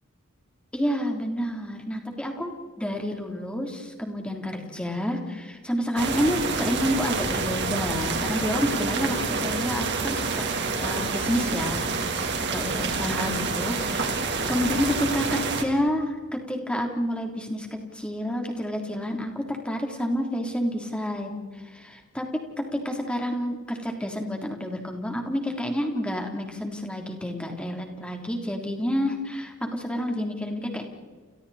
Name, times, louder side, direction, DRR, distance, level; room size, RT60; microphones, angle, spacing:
voice 1, 0.7-10.5 10.8-12.2 12.5-14.1 14.5-30.8, equal, 5° left, 2 dB, 3.4 m, -29 dB
sound 1, 6.0-15.6, right 4 dB, 55° right, 3.2 m, -28 dB
30.0 x 29.5 x 4.3 m, 1.5 s
head